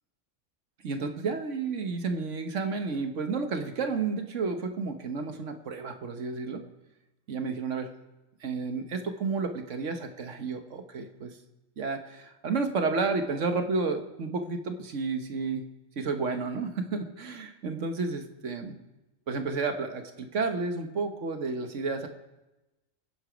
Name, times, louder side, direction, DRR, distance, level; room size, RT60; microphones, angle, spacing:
voice 1, 0.8-6.6 7.3-7.9 8.4-11.3 11.8-15.7 16.0-18.8 19.3-22.1, right 4 dB, 75° right, 6 dB, 1.6 m, -31 dB
23.5 x 8.0 x 5.2 m, 1.0 s
omnidirectional pair, 1.3 m